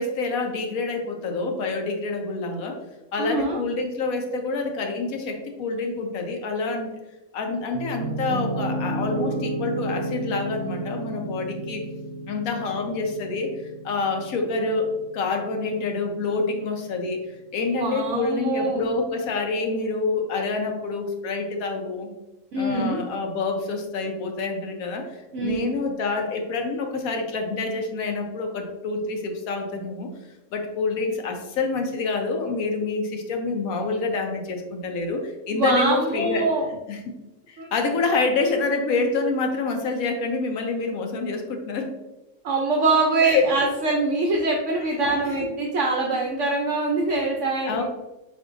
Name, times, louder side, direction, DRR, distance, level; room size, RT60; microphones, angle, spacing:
voice 1, 0.0-2.8 3.1-7.0 7.3-11.8 12.3-13.5 13.8-17.2 17.5-22.1 22.5-30.1 30.5-36.5 36.9-37.1 37.5-41.9 43.2-43.5 45.1-45.3 46.1-46.2 47.6-47.8, left 3 dB, 85° left, 3 dB, 1.2 m, -27 dB
voice 2, 3.2-3.6 17.8-18.9 22.5-23.0 25.3-25.8 35.5-36.7 37.6-37.7 42.4-47.8, right 3 dB, 65° right, -1 dB, 1.0 m, -24 dB
Piano, 7.7-15.8, right 1 dB, 85° right, 1.1 m, -32 dB
7.5 x 2.7 x 2.5 m, 1.0 s
omnidirectional pair, 1.5 m